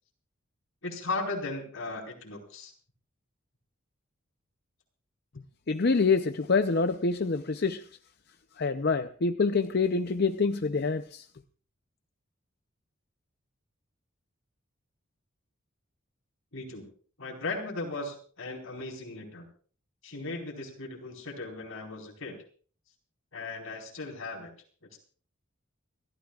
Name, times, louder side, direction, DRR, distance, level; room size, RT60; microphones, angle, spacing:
voice 1, 0.8-2.7 16.5-16.9 17.2-19.5 20.0-22.4 23.3-24.5 24.9-25.0, left 3 dB, 75° left, 0 dB, 4.7 m, -37 dB
voice 2, 5.7-7.8 8.6-11.2, left 4 dB, 50° left, 8 dB, 0.6 m, -26 dB
29.0 x 14.0 x 2.4 m, 0.43 s
head